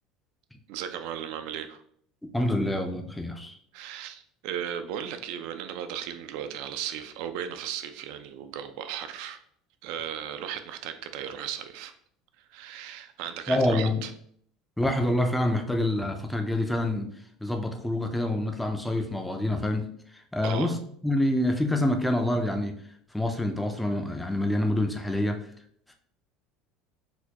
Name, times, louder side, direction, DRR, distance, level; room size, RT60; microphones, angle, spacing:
voice 1, 0.7-1.8 3.7-9.4 9.8-11.9 12.4-14.1 20.4-20.8, right 9 dB, 70° right, 9 dB, 0.4 m, -36 dB
voice 2, 2.3-3.6 13.5-14.0 14.8-17.1 17.4-19.9 20.1-20.8 21.0-22.8 23.1-25.5, left 1 dB, 5° left, 5 dB, 0.4 m, -26 dB
4.2 x 2.2 x 2.8 m, 0.65 s
supercardioid pair, 125°, 0 cm